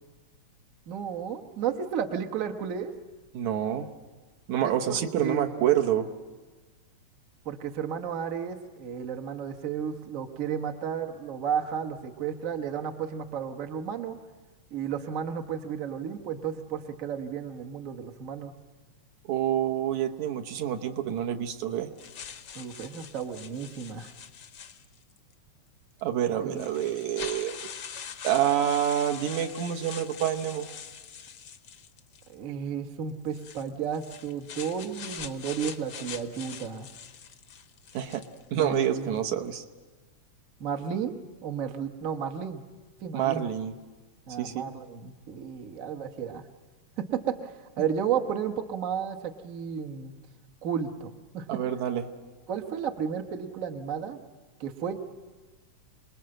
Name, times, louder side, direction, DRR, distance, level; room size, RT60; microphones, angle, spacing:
voice 1, 0.9-2.9 4.6-5.7 7.4-14.2 14.7-18.5 22.5-24.1 26.4-26.7 32.3-36.9 38.5-39.3 40.6-42.6 43.0-43.5 44.3-46.5 47.0-50.1 50.6-51.5 52.5-54.2 54.6-55.0, right 7 dB, 60° right, 4 dB, 0.8 m, -33 dB
voice 2, 3.3-3.9 4.5-6.1 19.3-21.9 26.0-27.6 28.2-30.7 37.9-38.2 38.5-39.6 43.1-43.7 44.4-44.7 51.5-52.0, right 10 dB, 75° right, 5 dB, 2.4 m, -27 dB
sound 1, 22.0-25.2 26.0-26.1 26.6-32.3 33.3-38.4, left 8 dB, 70° left, 1.0 m, -43 dB
27.5 x 20.0 x 7.7 m, 1.3 s
omnidirectional pair, 3.3 m